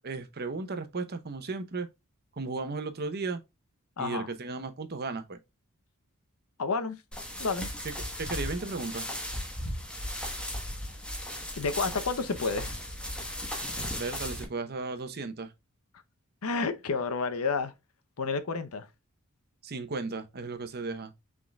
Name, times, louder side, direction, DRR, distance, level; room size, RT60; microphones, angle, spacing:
voice 1, 0.0-1.9 2.4-3.4 4.0-5.4 8.2-9.1 14.0-15.5 19.6-21.1, right 3 dB, 45° right, 0.8 m, -35 dB
voice 2, 4.0-4.3 6.6-7.0 7.4-7.7 11.6-12.8 16.4-17.7 18.2-18.9, left 4 dB, 80° left, 0.7 m, -30 dB
sound 1, 7.1-14.5, left 1 dB, 5° left, 1.2 m, -36 dB
6.2 x 3.7 x 2.3 m
head